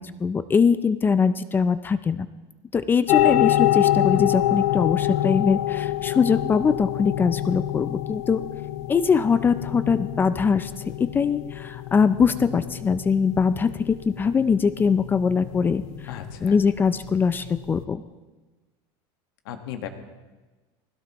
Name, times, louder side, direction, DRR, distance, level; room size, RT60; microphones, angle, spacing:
voice 1, 0.0-2.3 2.7-8.5 8.9-10.7 11.0-15.8 16.4-18.0, left 6 dB, 15° left, 13 dB, 0.4 m, -22 dB
sound 1, 3.1-17.8, left 14 dB, 55° left, 0.7 m, -26 dB
voice 2, 16.1-16.6 19.4-19.9, left 9 dB, 85° left, 6 dB, 1.6 m, -36 dB
20.0 x 16.5 x 3.0 m, 1.2 s
supercardioid pair, 150°, 12 cm